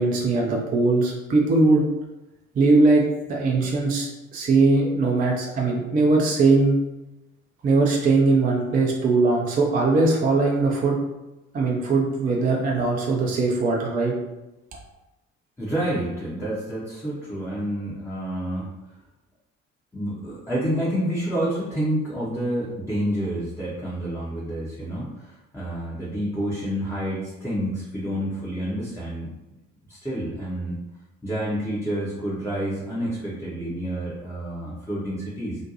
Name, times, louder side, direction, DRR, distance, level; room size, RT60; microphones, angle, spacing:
voice 1, 0.0-1.9 2.5-6.8 7.6-11.0 11.5-14.1, right 3 dB, 20° right, -1 dB, 0.4 m, -20 dB
voice 2, 15.6-18.7 19.9-29.3 29.9-30.8 31.2-35.6, right 1 dB, 5° left, -8 dB, 0.7 m, -28 dB
2.5 x 2.2 x 2.8 m, 0.99 s
figure-of-eight pair, 50°, 40 cm